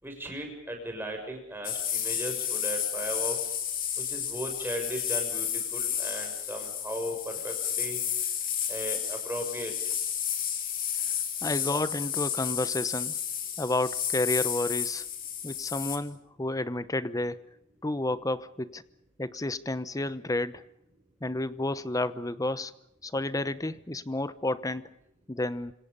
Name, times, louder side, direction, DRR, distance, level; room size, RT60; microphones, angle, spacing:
voice 1, 0.0-3.4 4.0-5.5 5.7-8.0 8.7-9.7, equal, 10° right, 2 dB, 6.7 m, -36 dB
sound 1, 1.6-16.0, left 9 dB, 45° left, 3.5 m, -32 dB
voice 2, 11.4-13.1 13.6-15.0 15.4-17.4 17.8-18.8 19.2-20.6 21.2-22.7 23.0-24.9 25.3-25.7, left 2 dB, 15° left, 15 dB, 0.9 m, -31 dB
28.5 x 26.0 x 5.4 m, 0.81 s
head